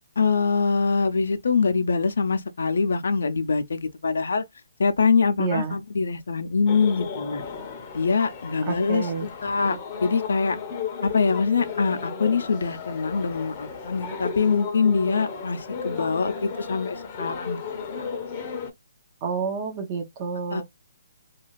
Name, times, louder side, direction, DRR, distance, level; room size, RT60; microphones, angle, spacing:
voice 1, 0.2-4.4 4.8-7.4 7.9-10.6 11.0-17.6 18.0-18.1 20.5-20.6, left 5 dB, 75° left, 0.5 m, -24 dB
voice 2, 5.4-5.7 8.7-9.3 19.2-20.6, right 5 dB, 30° right, 0.7 m, -29 dB
sound 1, 6.7-18.7, left 6 dB, 30° left, 0.6 m, -35 dB
2.4 x 2.3 x 3.0 m
hypercardioid pair, 155°, 0 cm